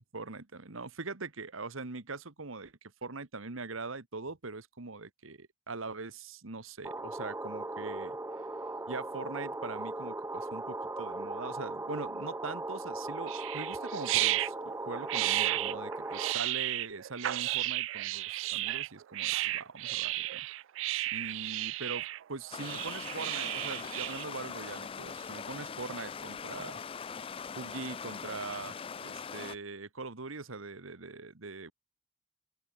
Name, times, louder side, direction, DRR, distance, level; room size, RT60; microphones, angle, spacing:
voice 1, 0.1-8.2 8.9-20.4 21.1-26.8 27.5-31.7, right 3 dB, 85° right, 1.6 m, -42 dB
sound 1, 6.8-16.3, right 2 dB, 15° right, 0.7 m, -38 dB
sound 2, 13.3-24.2, right 16 dB, 70° right, 0.3 m, -33 dB
Stream, 22.5-29.6, left 6 dB, 25° left, 0.4 m, -41 dB
open air
head